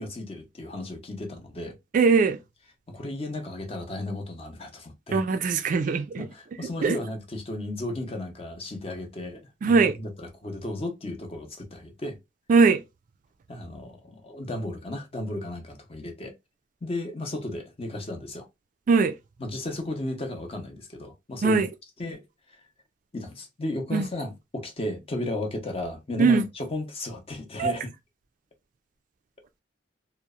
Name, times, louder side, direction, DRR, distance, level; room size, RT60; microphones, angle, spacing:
voice 1, 0.0-1.8 2.9-5.4 6.2-12.2 13.5-16.3 16.8-18.5 19.4-21.7 22.0-22.2 22.5-22.6 23.1-27.9, left 1 dB, 30° left, 0.6 m, -34 dB
voice 2, 1.9-2.4 5.1-6.3 6.8-7.0 9.6-9.9 12.5-12.8 18.9-19.1 21.4-21.7 23.9-24.1 26.2-26.4 27.6-27.7, right 4 dB, 45° right, 0.3 m, -20 dB
2.8 x 2.0 x 2.3 m
head